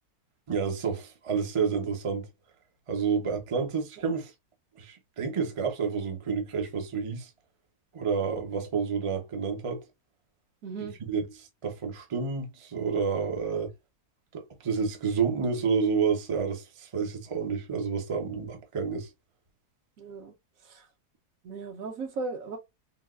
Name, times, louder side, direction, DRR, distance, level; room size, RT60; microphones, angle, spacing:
voice 1, 0.5-2.3 2.9-4.3 4.8-7.3 7.9-9.8 10.8-13.7 14.3-19.1, right 5 dB, 40° right, 0.4 m, -29 dB
voice 2, 10.6-10.9 20.0-20.3 20.6-20.9 21.4-22.6, right 4 dB, 65° right, 1.1 m, -36 dB
3.9 x 2.3 x 2.3 m
omnidirectional pair, 1.7 m